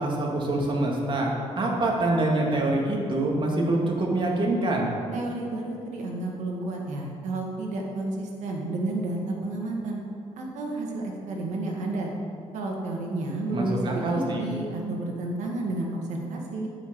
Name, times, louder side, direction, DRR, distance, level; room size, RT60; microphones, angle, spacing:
voice 1, 0.0-4.9 13.5-14.5, right 2 dB, 45° right, -1 dB, 2.1 m, -25 dB
voice 2, 5.1-10.0 10.4-12.1 12.5-16.7, right 2 dB, 85° right, 0 dB, 1.8 m, -31 dB
9.3 x 5.9 x 7.0 m, 2.3 s
cardioid pair, 95°, 12 cm